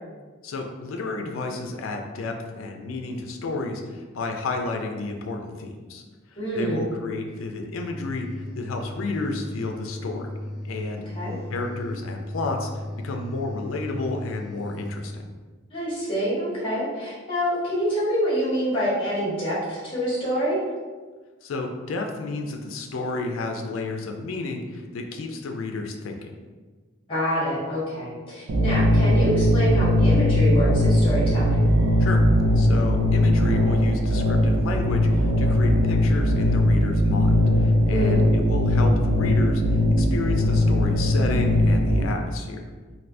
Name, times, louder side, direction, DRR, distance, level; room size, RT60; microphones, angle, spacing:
voice 1, 0.4-6.0 6.5-10.3 10.6-11.0 11.5-12.7 13.0-15.2 21.4-26.3 32.0-32.2 32.6-39.6 40.0-42.6, left 3 dB, 80° left, 3 dB, 0.4 m, -31 dB
voice 2, 6.4-6.8 10.9-11.3 15.7-20.6 27.1-31.7 37.9-38.2, equal, 25° left, -8 dB, 1.3 m, -26 dB
sound 1, 7.7-15.3, left 1 dB, 45° right, 1.0 m, -36 dB
sound 2, 28.5-42.0, left 1 dB, 70° right, 0.4 m, -20 dB
3.3 x 2.6 x 2.6 m, 1.4 s
head